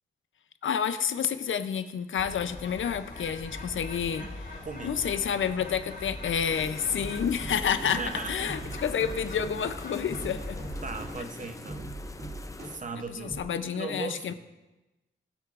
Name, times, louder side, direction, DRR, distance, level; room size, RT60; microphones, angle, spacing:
voice 1, 0.6-4.2 4.8-8.0 8.3-10.6 13.2-14.3, left 7 dB, 75° left, 11 dB, 0.6 m, -29 dB
Bird, 2.2-11.2, left 2 dB, 50° left, 4.2 m, -41 dB
voice 2, 4.6-5.0 7.9-8.5 10.8-11.9 12.6-14.3, right 4 dB, 40° right, 7 dB, 0.8 m, -38 dB
sound 1, 6.5-12.8, left 2 dB, 15° left, 0.4 m, -45 dB
sound 2, 7.0-13.4, right 2 dB, 85° right, 2.2 m, -42 dB
21.0 x 8.0 x 2.5 m, 1.1 s
wide cardioid pair, 155°, 20 cm